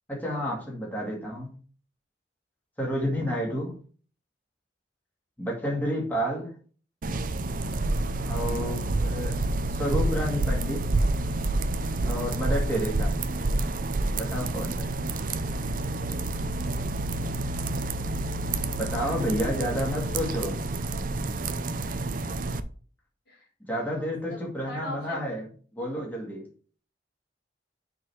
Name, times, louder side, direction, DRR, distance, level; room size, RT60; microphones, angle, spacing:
voice 1, 0.1-1.5 2.8-3.7 5.4-6.5 8.2-9.4 9.7-10.8 12.0-13.2 14.2-14.9 18.8-20.6 23.7-25.4 25.8-26.4, equal, 10° left, -3 dB, 2.4 m, -30 dB
sound 1, 7.0-22.6, right 2 dB, 50° right, 0.6 m, -28 dB
voice 2, 18.2-18.8 19.5-20.2 21.9-22.0 23.3-23.4 23.7-25.4, equal, 60° left, -1 dB, 2.9 m, -43 dB
6.8 x 4.1 x 6.2 m, 0.41 s
head